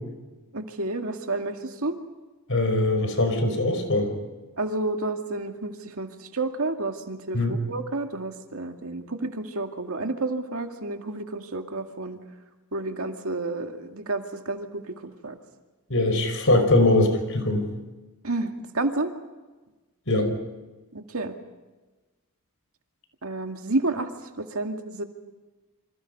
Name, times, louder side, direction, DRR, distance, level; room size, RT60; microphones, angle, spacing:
voice 1, 0.5-2.0 4.6-12.2 12.7-15.4 18.2-19.1 20.9-21.4 23.2-24.1 24.4-25.0, right 2 dB, 70° right, 4 dB, 2.3 m, -30 dB
voice 2, 2.5-4.1 7.3-7.6 15.9-17.7 20.1-20.3, left 2 dB, 60° left, 7 dB, 5.2 m, -22 dB
28.0 x 25.5 x 5.4 m, 1.2 s
head